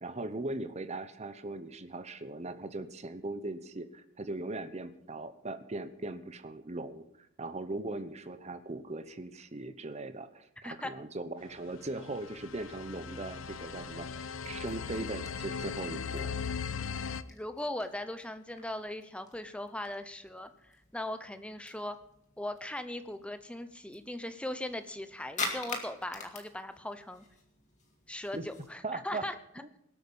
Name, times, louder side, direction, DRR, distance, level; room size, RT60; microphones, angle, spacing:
voice 1, 0.0-14.1 14.4-16.3 28.3-28.4 28.8-29.2, right 2 dB, 30° right, 10 dB, 0.9 m, -39 dB
sound 1, 11.8-17.2, left 6 dB, 65° left, 0.6 m, -38 dB
sound 2, 14.3-28.7, left 3 dB, 35° left, 2.1 m, -46 dB
voice 2, 17.3-22.0 22.4-27.2 28.1-29.3, left 1 dB, 5° left, 9 dB, 0.7 m, -39 dB
19.5 x 8.5 x 5.5 m, 0.78 s
head